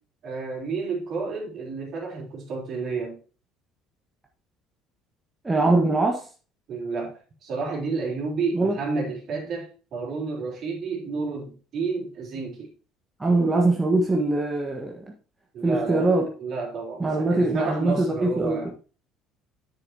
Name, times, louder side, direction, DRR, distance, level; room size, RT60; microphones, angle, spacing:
voice 1, 0.2-3.2 6.7-12.7 15.5-18.7, right 4 dB, 50° right, 3.7 m, -31 dB
voice 2, 5.4-6.2 8.5-8.7 13.2-15.0 15.6-16.3 17.0-18.7, right 2 dB, 15° right, 1.5 m, -22 dB
10.0 x 7.1 x 2.9 m
figure-of-eight pair, 55°, 0 cm